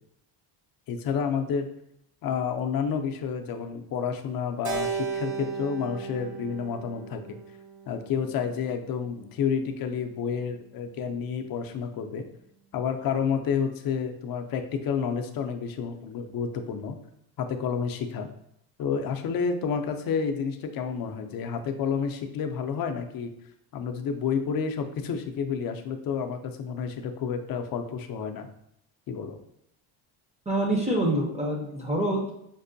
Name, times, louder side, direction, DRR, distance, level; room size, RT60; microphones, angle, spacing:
voice 1, 0.9-1.7 2.2-7.4 7.9-12.3 12.7-17.0 17.4-18.3 18.8-23.3 23.7-28.5 29.1-29.4, left 6 dB, 50° left, 6 dB, 0.5 m, -30 dB
Keyboard (musical), 4.6-9.0, right 6 dB, 55° right, 0.7 m, -36 dB
voice 2, 30.5-32.3, right 1 dB, 15° right, -1 dB, 0.5 m, -26 dB
5.3 x 2.1 x 2.6 m, 0.75 s
cardioid pair, 110°, 47 cm